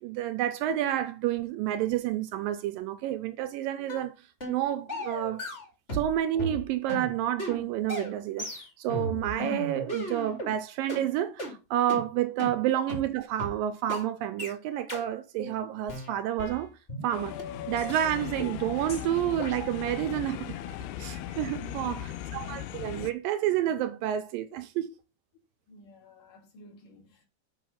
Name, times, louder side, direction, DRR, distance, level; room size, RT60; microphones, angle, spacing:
voice 1, 0.0-4.1 4.5-5.4 5.9-16.7 17.0-17.4 17.7-20.5 21.0-22.0 22.3-24.9, right 12 dB, 80° right, 2.1 m, -29 dB
sound 1, 3.9-4.1 4.4-4.6 4.9-6.1 6.4-10.5 10.9-11.0 11.4-11.5 11.9-12.0 12.4-12.5 12.9-13.0 13.4-13.5 13.9-14.0 14.4-14.5 14.9-15.0 15.4-15.5 15.9-17.1 17.4-17.5 17.9-18.0 18.4-18.6 18.9-19.0 19.4-19.5, equal, 20° left, 1.8 m, -36 dB
sound 2, 17.1-23.1, left 12 dB, 90° left, 2.7 m, -38 dB
voice 2, 21.6-22.0 25.7-27.3, equal, 60° left, 3.3 m, -50 dB
7.5 x 5.5 x 5.6 m
omnidirectional pair, 4.6 m